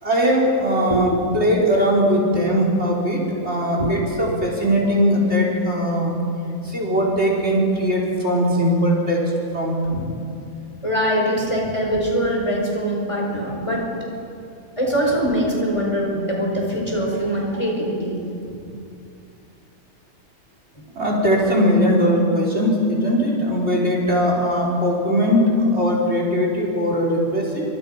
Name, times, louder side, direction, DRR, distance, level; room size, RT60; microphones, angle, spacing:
voice 1, 0.0-6.1 6.6-9.2 9.5-10.2 13.3-13.4 21.0-27.6, equal, 45° right, -2 dB, 4.8 m, -20 dB
voice 2, 10.8-13.9 14.8-18.2, equal, 20° left, -2 dB, 5.1 m, -22 dB
28.0 x 25.5 x 5.8 m, 2.5 s
omnidirectional pair, 1.5 m